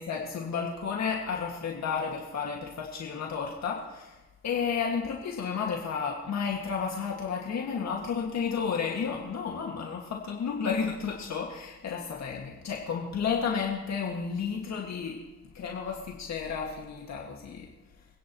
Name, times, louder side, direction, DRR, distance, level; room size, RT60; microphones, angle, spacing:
voice 1, 0.0-4.2 4.4-15.2 15.5-17.7, left 6 dB, 60° left, -1 dB, 2.1 m, -32 dB
26.5 x 10.0 x 3.1 m, 1.1 s
cardioid pair, 90°, 30 cm